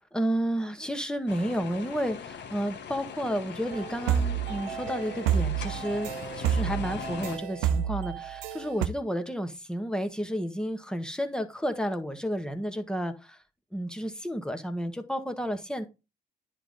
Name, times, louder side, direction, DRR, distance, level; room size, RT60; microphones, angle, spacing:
voice 1, 0.1-13.4 13.7-15.8, equal, 5° left, 1.4 m, -31 dB
sound 1, 1.3-7.4, left 7 dB, 60° left, 1.0 m, -41 dB
sound 2, 3.7-8.9, right 9 dB, 85° right, 0.6 m, -29 dB
9.9 x 3.7 x 3.9 m
hypercardioid pair, 55°, 20 cm